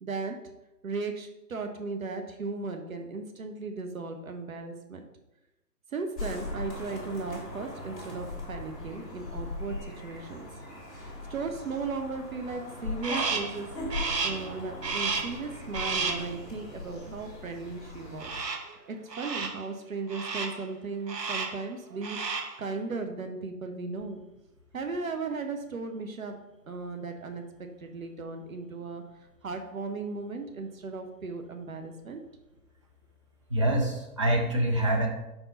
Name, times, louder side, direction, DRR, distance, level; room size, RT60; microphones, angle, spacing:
voice 1, 0.0-0.5 0.8-5.0 5.9-10.5 11.0-13.7 14.2-18.3 18.9-24.2 24.7-26.4 26.7-29.0 29.4-32.2, right 4 dB, 55° right, 5 dB, 0.9 m, -36 dB
sound 1, 6.2-18.4, left 1 dB, 15° left, 2.1 m, -39 dB
Crow, 13.0-13.6 13.9-14.5 14.8-15.4 15.7-16.3 18.2-18.7 19.1-19.6 20.1-20.6 21.1-21.6 21.9-22.6, right 4 dB, 85° right, 1.2 m, -32 dB
voice 2, 33.5-35.1, right 1 dB, 20° right, -1 dB, 0.5 m, -25 dB
5.3 x 4.8 x 5.2 m, 0.95 s
figure-of-eight pair, 140°, 49 cm